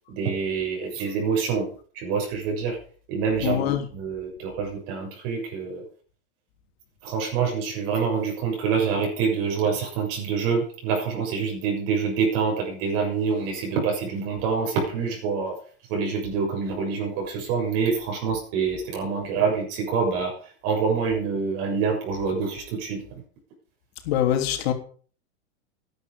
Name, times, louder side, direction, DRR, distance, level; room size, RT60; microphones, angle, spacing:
voice 1, 0.1-1.7 1.9-2.8 3.1-3.7 3.9-5.8 7.0-15.6 15.9-20.3 20.6-23.0, right 5 dB, 55° right, 6.8 m, -26 dB
voice 2, 3.4-3.9 24.0-24.7, left 11 dB, 65° left, 3.4 m, -23 dB
13.0 x 10.5 x 5.2 m
hypercardioid pair, 120°, 34 cm